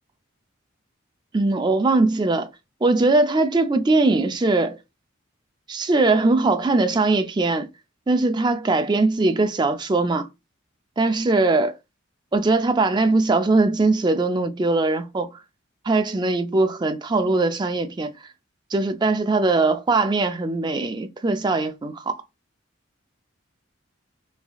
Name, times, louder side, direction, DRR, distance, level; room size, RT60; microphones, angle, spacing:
voice 1, 1.3-2.5 2.8-4.8 5.7-7.7 8.1-10.3 11.0-11.7 12.3-15.3 15.8-18.1 18.7-22.2, right 3 dB, 20° right, 0.3 m, -21 dB
3.5 x 3.3 x 2.3 m
head